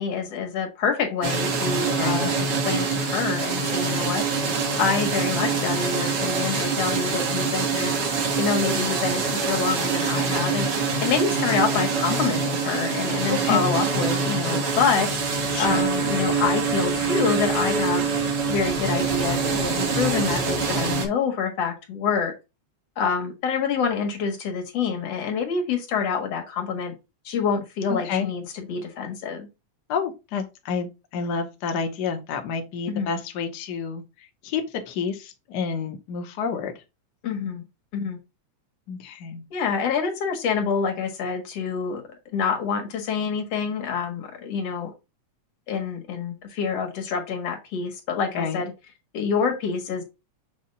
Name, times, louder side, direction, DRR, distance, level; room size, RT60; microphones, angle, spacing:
voice 1, 0.0-4.2 4.8-7.9 8.4-10.7 11.0-15.1 15.3-18.1 18.5-22.3 23.0-26.9 27.2-29.5 32.9-33.1 37.2-37.6 37.9-38.2 39.5-42.0 42.3-44.9 45.7-48.7 49.1-50.0, left 6 dB, 60° left, 2.5 m, -26 dB
sound 1, 1.2-21.1, right 4 dB, 55° right, 2.1 m, -25 dB
voice 2, 2.0-2.3 13.3-13.6 15.5-15.9 27.9-28.3 29.9-36.7 38.9-39.4 48.3-48.6, left 6 dB, 85° left, 0.9 m, -29 dB
7.1 x 2.8 x 5.3 m
omnidirectional pair, 3.4 m